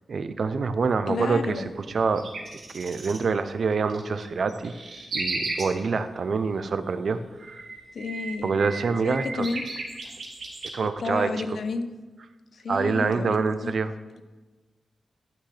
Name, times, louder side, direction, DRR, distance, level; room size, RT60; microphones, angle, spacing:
voice 1, 0.1-2.3 2.7-4.7 5.1-7.6 8.4-9.5 10.7-11.5 12.7-13.9, right 4 dB, 60° right, 12 dB, 0.4 m, -26 dB
voice 2, 1.1-1.7 7.9-8.5 9.0-9.6 11.0-11.9 12.5-13.7, left 4 dB, 75° left, 9 dB, 0.5 m, -31 dB
sound 1, 1.9-3.2 3.7-5.7 7.2-10.7, right 3 dB, 75° right, 1.5 m, -35 dB
11.5 x 5.9 x 3.3 m, 1.2 s
wide cardioid pair, 115°, 0 cm